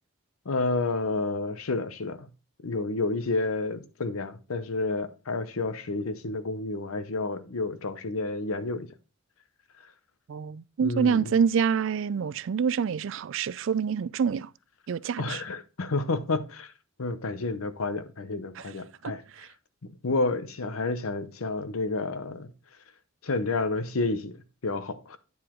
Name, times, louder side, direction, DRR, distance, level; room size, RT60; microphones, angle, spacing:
voice 1, 0.4-2.3 2.6-8.9 9.8-9.9 10.8-11.3 15.2-16.7 17.0-19.2 20.0-22.5 23.2-24.4 24.6-25.2, left 3 dB, 85° left, 0.8 m, -30 dB
voice 2, 10.3-14.5 14.9-15.4 19.0-19.5, right 6 dB, 65° right, 0.4 m, -27 dB
9.5 x 4.8 x 3.7 m
head